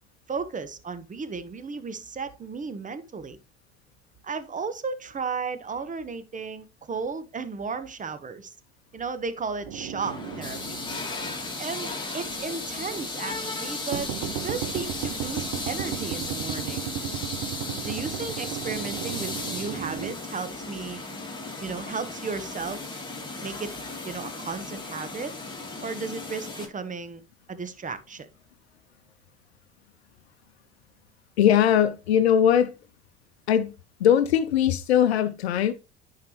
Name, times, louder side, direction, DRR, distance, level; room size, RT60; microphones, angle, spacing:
voice 1, 0.3-3.4 4.2-8.5 8.9-10.8 11.6-16.9 17.8-21.0 21.6-22.8 23.4-23.8 24.0-25.3 25.8-27.2 27.5-28.3, right 5 dB, 25° right, 1.2 m, -34 dB
sound 1, 9.7-11.9 12.3-12.4 13.9-20.1, right 11 dB, 65° right, 0.9 m, -35 dB
sound 2, 10.0-26.7, left 3 dB, 15° left, 2.7 m, -35 dB
voice 2, 31.4-32.7 33.5-33.7 34.0-35.7, left 9 dB, 90° left, 0.6 m, -20 dB
10.5 x 4.8 x 3.2 m
hypercardioid pair, 70°, 31 cm